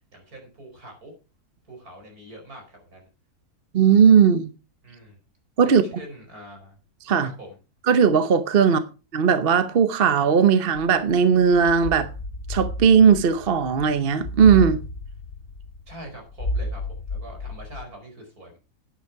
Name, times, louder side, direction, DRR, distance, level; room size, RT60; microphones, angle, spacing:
voice 1, 0.1-1.1 1.7-3.1 4.8-5.2 5.6-6.8 7.2-7.6 8.6-8.7 15.9-18.6, right 1 dB, 65° right, 5.3 m, -44 dB
voice 2, 3.7-4.5 5.6-5.8 7.1-7.3 7.9-8.8 9.1-12.1 12.5-14.8, right 6 dB, 45° right, 0.9 m, -17 dB
sound 1, 10.7-17.8, left 1 dB, 50° left, 2.3 m, -33 dB
11.0 x 9.3 x 4.7 m
omnidirectional pair, 1.7 m